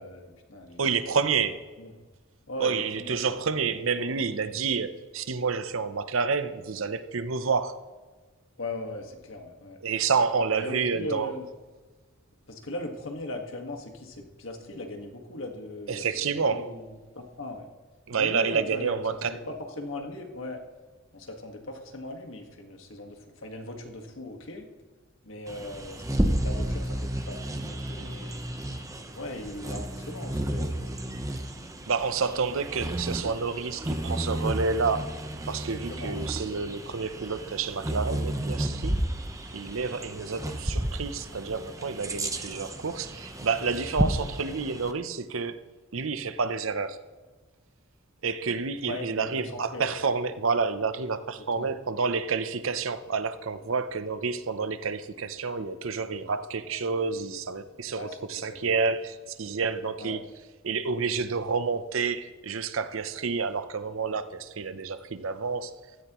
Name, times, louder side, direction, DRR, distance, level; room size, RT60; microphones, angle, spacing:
voice 1, 0.0-1.0 1.8-1.9 2.5-3.2 4.0-4.2 8.6-9.8 10.5-11.5 12.5-16.0 16.4-16.8 17.2-17.7 18.1-19.4 19.8-20.6 21.1-24.7 25.2-26.0 26.4-28.4 29.2-31.2 35.7-36.2 42.1-42.2 48.8-49.9 51.6-51.7 58.0-58.2 58.5-58.7 60.0-60.2, left 2 dB, 70° left, 1.7 m, -39 dB
voice 2, 0.8-1.6 2.6-7.8 9.8-11.3 15.9-16.7 18.1-19.4 31.9-35.2 35.5-39.0 39.5-45.6 45.9-47.0 48.2-60.2 60.6-65.8, right 5 dB, 75° right, 0.7 m, -29 dB
Bird vocalization bird call bird song, 25.5-44.9, right 1 dB, 15° right, 0.9 m, -32 dB
16.0 x 13.5 x 3.1 m
head